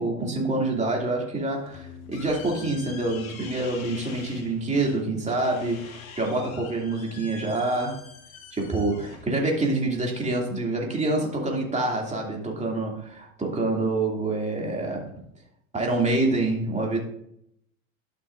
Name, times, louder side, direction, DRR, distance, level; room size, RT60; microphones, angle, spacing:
voice 1, 0.0-8.1 8.5-15.1 15.7-17.0, right 2 dB, 15° right, -1 dB, 2.5 m, -26 dB
sound 1, 1.5-10.6, left 6 dB, 85° left, 1.5 m, -46 dB
sound 2, 1.7-12.0, left 7 dB, 60° left, 2.0 m, -52 dB
11.5 x 6.2 x 2.5 m, 0.71 s
hypercardioid pair, 95°, 40 cm